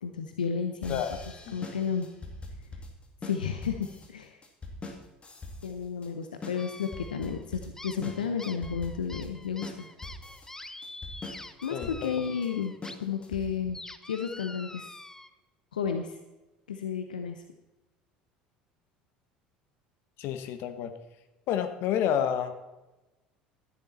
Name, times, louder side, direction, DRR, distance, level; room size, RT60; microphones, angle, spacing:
voice 1, 0.0-1.0 1.5-2.1 3.2-4.4 5.6-9.9 11.6-12.7 13.0-13.8 14.1-15.0 15.7-16.2 16.7-17.4, left 6 dB, 80° left, 6 dB, 0.8 m, -32 dB
sound 1, 0.8-13.7, left 2 dB, 25° left, 2.4 m, -43 dB
sound 2, 6.6-7.4 7.8-13.0 13.3-15.3, left 2 dB, 10° left, 0.9 m, -46 dB
voice 2, 11.7-12.1 20.2-20.9 21.5-22.6, left 9 dB, 55° left, 9 dB, 1.3 m, -29 dB
13.0 x 10.5 x 4.2 m, 1.1 s
figure-of-eight pair, 65°, 5 cm